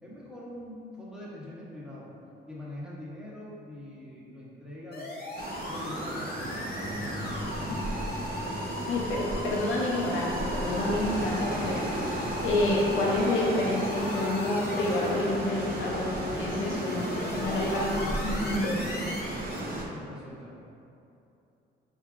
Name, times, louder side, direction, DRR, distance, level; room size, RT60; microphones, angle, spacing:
voice 1, 0.0-2.1 2.5-5.2 5.7-6.5 6.9-7.8 17.2-18.5 19.3-20.6, left 1 dB, 5° right, -7 dB, 1.2 m, -43 dB
sound 1, 4.9-19.8, left 1 dB, 50° left, 0.9 m, -37 dB
sound 2, 5.4-19.9, right 1 dB, 45° right, 0.7 m, -35 dB
sound 3, 6.8-12.4, left 1 dB, 15° left, 0.5 m, -43 dB
voice 2, 8.9-18.9, left 2 dB, 80° left, -4 dB, 0.8 m, -29 dB
5.5 x 3.5 x 2.5 m, 2.7 s
cardioid pair, 90°, 20 cm